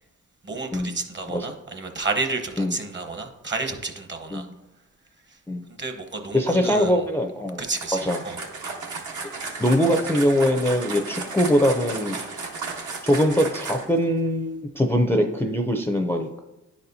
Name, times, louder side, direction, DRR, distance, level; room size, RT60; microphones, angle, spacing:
voice 1, 0.4-4.5 5.3-5.4 5.8-6.9 7.6-8.4, right 3 dB, 35° right, 6 dB, 1.0 m, -31 dB
voice 2, 6.3-7.6 8.0-8.2 9.4-12.2 13.0-16.4, equal, 5° left, 4 dB, 0.5 m, -22 dB
sound 1, 7.7-14.0, right 4 dB, 70° right, 1.2 m, -34 dB
10.0 x 4.2 x 2.7 m, 0.97 s
cardioid pair, 70°, 31 cm